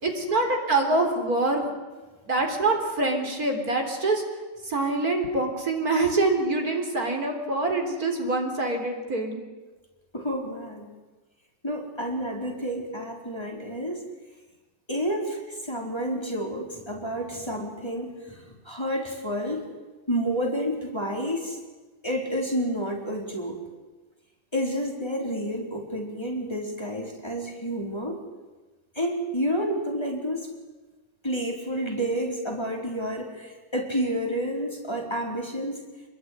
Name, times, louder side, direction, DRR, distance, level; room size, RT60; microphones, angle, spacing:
voice 1, 0.0-1.7 2.3-4.2 4.6-9.4, right 2 dB, 60° right, 3 dB, 4.2 m, -25 dB
voice 2, 10.1-10.9 11.6-14.1 14.9-19.7 20.1-21.6 22.0-23.6 24.5-28.2 28.9-30.5 31.2-35.8, equal, 15° left, -1 dB, 4.5 m, -30 dB
27.5 x 21.5 x 9.7 m, 1.2 s
omnidirectional pair, 1.8 m